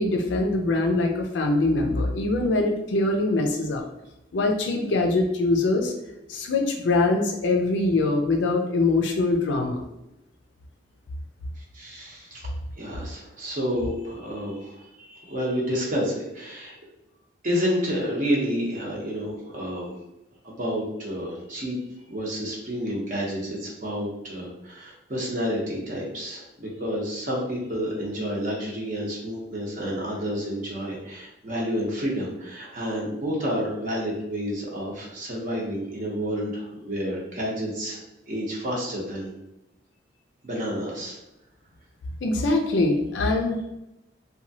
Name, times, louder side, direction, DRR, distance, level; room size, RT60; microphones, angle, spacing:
voice 1, 0.0-3.8 4.3-5.9 6.3-9.8 42.2-43.6, left 2 dB, 75° left, 2 dB, 0.4 m, -23 dB
voice 2, 11.6-12.5 12.8-16.8 17.4-19.9 20.4-21.8 22.1-39.3 40.4-41.2, equal, 45° right, -4 dB, 0.6 m, -30 dB
2.9 x 2.2 x 2.7 m, 0.90 s
head